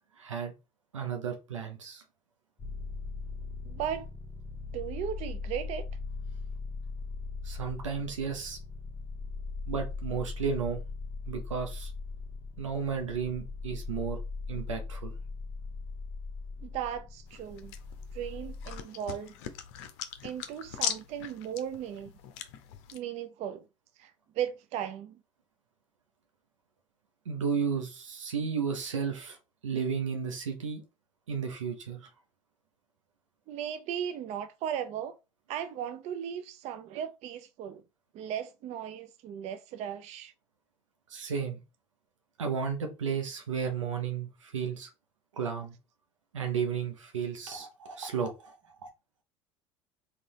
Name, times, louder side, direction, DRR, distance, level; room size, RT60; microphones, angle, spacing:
voice 1, 0.2-0.5 0.9-2.0 7.4-8.6 9.7-10.8 11.3-11.9 12.6-14.2 14.5-15.1 27.3-29.4 29.6-30.8 31.3-32.1 41.1-41.6 42.4-44.9 45.3-45.7 46.3-48.9, right 6 dB, 80° right, 0.7 m, -33 dB
sound 1, 2.6-18.8, left 4 dB, 25° left, 0.8 m, -39 dB
voice 2, 3.6-4.1 4.7-5.8 16.6-17.7 18.1-19.3 20.2-22.1 22.9-23.6 24.0-25.2 33.5-35.2 35.5-37.8 38.1-40.3, right 9 dB, 45° right, 0.4 m, -36 dB
sound 2, 17.3-23.0, left 9 dB, 60° left, 0.5 m, -40 dB
3.8 x 2.4 x 3.0 m
figure-of-eight pair, 65°, 16 cm